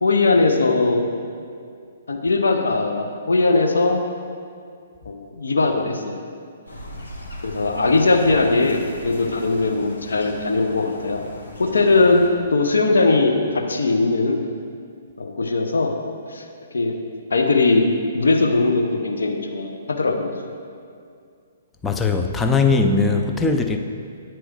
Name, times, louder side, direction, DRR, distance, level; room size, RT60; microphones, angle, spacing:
voice 1, 0.0-1.1 2.1-4.0 5.1-6.2 7.4-11.3 11.6-12.2 12.5-14.4 15.2-16.0 16.3-16.4 16.7-16.9 17.3-20.4, left 3 dB, 65° left, 3 dB, 0.7 m, -19 dB
sound 1, 6.7-12.3, left 1 dB, 80° left, 1.1 m, -38 dB
voice 2, 21.8-23.8, left 4 dB, 10° left, 4 dB, 0.4 m, -19 dB
8.9 x 3.1 x 4.7 m, 2.3 s
figure-of-eight pair, 120°, 0 cm